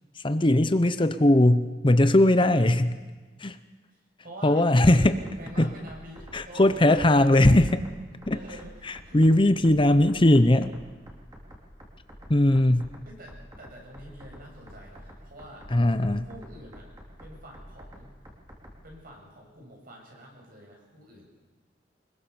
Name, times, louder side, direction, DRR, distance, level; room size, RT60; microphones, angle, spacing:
voice 1, 0.2-3.0 3.4-3.6 4.4-5.2 5.6-5.7 6.3-7.8 8.3-8.4 9.1-10.7 12.3-12.9 15.7-16.3, left 1 dB, 30° left, 11 dB, 0.8 m, -19 dB
voice 2, 3.9-7.6 8.3-9.3 13.1-15.7 16.2-16.9 17.2-18.1 18.8-21.3, right 1 dB, 50° right, 0 dB, 7.8 m, -47 dB
sound 1, 5.3-18.9, equal, 20° right, 4.0 m, -48 dB
25.0 x 22.0 x 7.0 m, 1.3 s
head